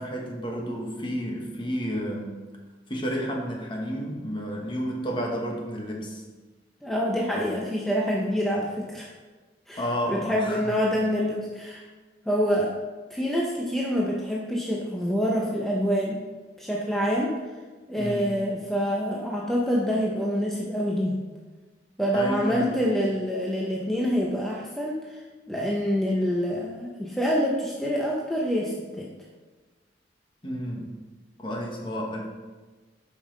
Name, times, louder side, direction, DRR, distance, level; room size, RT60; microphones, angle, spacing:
voice 1, 0.0-2.4 2.9-6.2 9.8-10.7 18.0-18.3 22.1-22.8 30.4-30.9 31.4-32.3, equal, 30° left, 0 dB, 1.2 m, -31 dB
voice 2, 6.8-9.1 9.7-9.8 10.1-11.8 12.3-12.7 13.1-16.2 16.6-17.4 17.9-21.2 22.0-25.2 25.5-29.1, equal, ahead, -3 dB, 0.7 m, -26 dB
8.2 x 5.5 x 3.9 m, 1.3 s
head